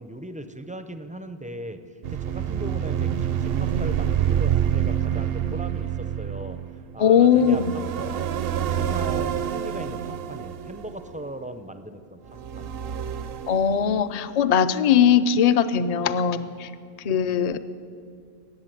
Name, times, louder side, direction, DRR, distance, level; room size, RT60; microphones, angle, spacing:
voice 1, 0.0-1.8 2.1-6.6 6.9-7.6 8.0-8.3 8.6-12.7, right 1 dB, 15° right, 9 dB, 0.3 m, -38 dB
sound 1, 2.0-11.6 12.3-14.3, right 9 dB, 65° right, 0.7 m, -27 dB
voice 2, 7.0-7.7 13.5-16.7 17.0-17.6, left 8 dB, 50° left, 12 dB, 0.5 m, -20 dB
14.5 x 8.3 x 9.1 m, 2.3 s
omnidirectional pair, 1.1 m